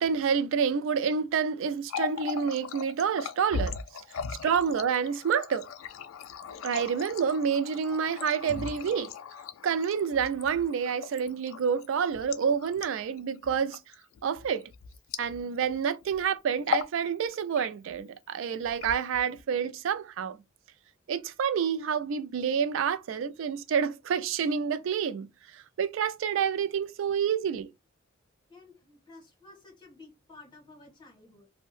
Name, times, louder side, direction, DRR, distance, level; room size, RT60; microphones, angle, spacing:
voice 1, 0.0-3.8 4.4-5.7 6.6-9.1 9.6-13.8 14.2-14.7 15.2-20.4 21.1-25.3 25.5-27.7, right 7 dB, 70° right, 0.3 m, -28 dB
Water tap faucet, 1.7-15.7 16.0-16.2 16.6-17.0 17.3-18.0 18.6-19.4, left 6 dB, 80° left, 0.3 m, -38 dB
voice 2, 28.5-31.5, left 3 dB, 25° left, 1.1 m, -53 dB
2.6 x 2.1 x 3.1 m
head